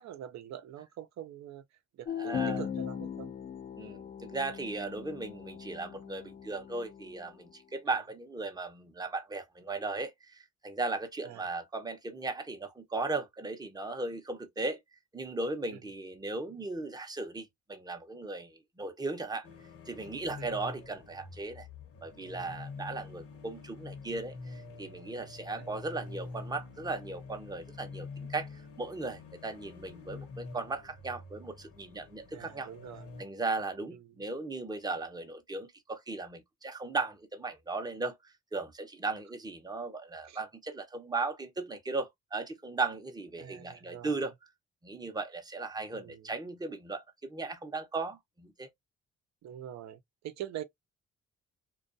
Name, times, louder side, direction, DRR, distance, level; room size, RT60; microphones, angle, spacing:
voice 1, 0.0-1.6 1.9-3.3 11.2-11.5 15.7-15.8 20.4-20.5 25.6-25.7 32.3-33.1 33.9-34.1 40.3-40.4 43.4-44.3 45.9-46.3 49.4-50.6, right 11 dB, 65° right, 0.6 m, -44 dB
sound 1, 2.0-7.4, left 8 dB, 30° left, 0.4 m, -39 dB
voice 2, 2.2-2.6 3.8-14.8 15.1-19.5 19.9-21.7 22.0-28.5 28.8-32.7 33.2-38.2 38.5-44.3 44.8-48.7, right 3 dB, 15° right, 0.6 m, -37 dB
sound 2, 19.4-33.2, left 3 dB, 50° left, 0.9 m, -47 dB
2.3 x 2.2 x 2.5 m
cardioid pair, 90°, 30 cm